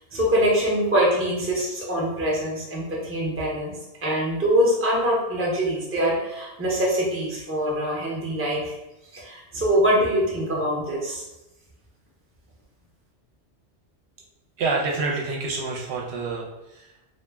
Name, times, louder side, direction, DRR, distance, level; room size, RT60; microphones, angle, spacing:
voice 1, 0.1-3.7 4.0-8.7 9.1-11.2, equal, 15° right, -4 dB, 0.5 m, -24 dB
voice 2, 14.6-17.1, right 3 dB, 70° right, -2 dB, 0.8 m, -28 dB
2.3 x 2.1 x 3.3 m, 0.93 s
omnidirectional pair, 1.2 m